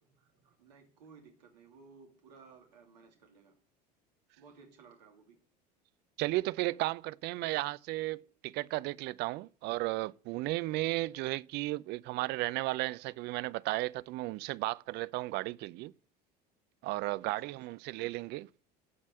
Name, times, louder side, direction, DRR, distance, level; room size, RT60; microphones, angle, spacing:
voice 1, 0.1-3.6 4.4-5.4 17.4-17.8, right 5 dB, 75° right, 2.8 m, -58 dB
voice 2, 6.2-15.9 16.8-18.5, right 19 dB, 50° right, 0.6 m, -34 dB
14.5 x 5.5 x 7.9 m
figure-of-eight pair, 70°, 21 cm